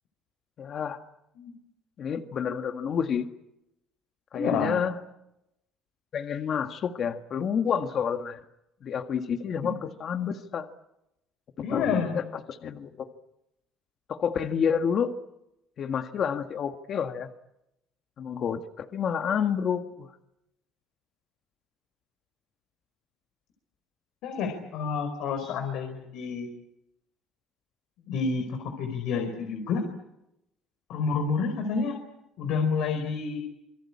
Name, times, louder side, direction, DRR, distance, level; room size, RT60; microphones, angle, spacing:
voice 1, 0.6-1.0 2.0-3.3 4.3-5.0 6.1-8.4 8.8-10.7 11.6-13.1 14.1-15.1 15.8-17.3 18.2-20.1 25.5-25.6, left 7 dB, 50° left, 7 dB, 1.7 m, -29 dB
voice 2, 4.3-4.8 9.6-9.7 11.6-12.2 24.2-26.5 28.1-29.8 30.9-32.0 32.4-33.4, left 5 dB, 75° left, 5 dB, 4.9 m, -29 dB
27.0 x 23.0 x 8.7 m, 0.86 s
cardioid pair, 105°, 0 cm